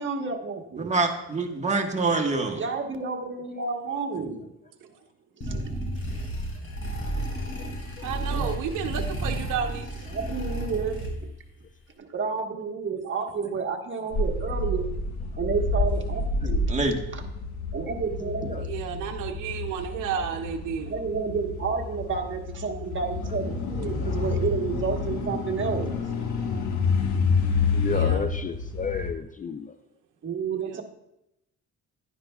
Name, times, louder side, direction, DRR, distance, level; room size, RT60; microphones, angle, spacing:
voice 1, 0.0-0.9 2.6-4.5 5.4-5.6 6.0-6.1 10.1-11.3 12.0-15.0 15.4-16.7 17.1-17.2 17.7-18.6 20.8-25.9 28.8-28.9 30.2-30.8, right 5 dB, 40° right, 2 dB, 1.4 m, -30 dB
voice 2, 0.8-2.6 8.3-8.5 16.7-17.0, right 3 dB, 25° right, 2 dB, 1.4 m, -26 dB
sound 1, 5.4-11.5, right 1 dB, 45° left, 3.7 m, -32 dB
voice 3, 8.0-10.1 18.6-21.0 27.9-28.3 30.7-30.8, right 7 dB, 90° right, 3 dB, 0.7 m, -32 dB
sound 2, 14.1-29.1, left 4 dB, 70° left, 1.4 m, -29 dB
voice 4, 27.7-29.7, left 6 dB, 30° left, 9 dB, 0.4 m, -32 dB
11.0 x 10.0 x 2.3 m, 0.85 s
cardioid pair, 90°, 30 cm